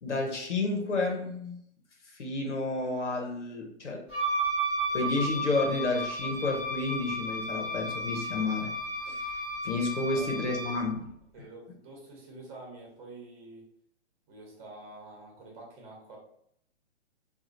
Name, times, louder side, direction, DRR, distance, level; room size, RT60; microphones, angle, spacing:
voice 1, 0.0-1.6 2.1-4.0 4.9-8.7 9.1-9.4 9.6-11.0, left 3 dB, 85° left, 0 dB, 0.8 m, -31 dB
Wind instrument woodwind instrument, 4.1-10.9, right 1 dB, 15° right, 0.7 m, -33 dB
voice 2, 10.1-10.7 11.3-13.7 14.3-16.2, right 2 dB, 30° right, -2 dB, 1.1 m, -47 dB
3.0 x 2.3 x 2.6 m, 0.70 s
figure-of-eight pair, 125°, 34 cm